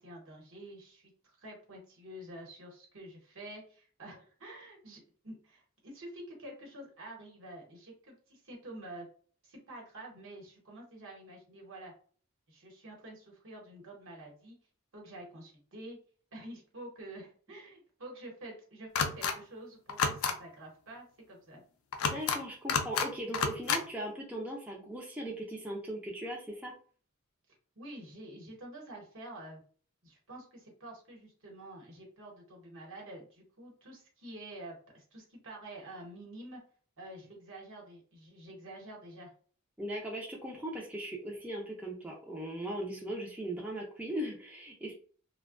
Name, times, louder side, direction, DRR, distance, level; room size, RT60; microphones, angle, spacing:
voice 1, 0.0-9.1 9.4-11.9 12.5-14.6 14.9-16.0 16.3-21.6 27.8-29.6 30.0-36.6 37.0-39.3, right 1 dB, 65° right, 0 dB, 1.0 m, -48 dB
sound 1, 18.9-19.3 19.9-20.3 21.9-22.4 22.7-23.1 23.3-23.8, left 6 dB, 75° left, 0.4 m, -29 dB
voice 2, 22.0-26.7 39.8-44.9, right 1 dB, 5° right, -2 dB, 0.4 m, -39 dB
2.5 x 2.2 x 2.4 m, 0.43 s
head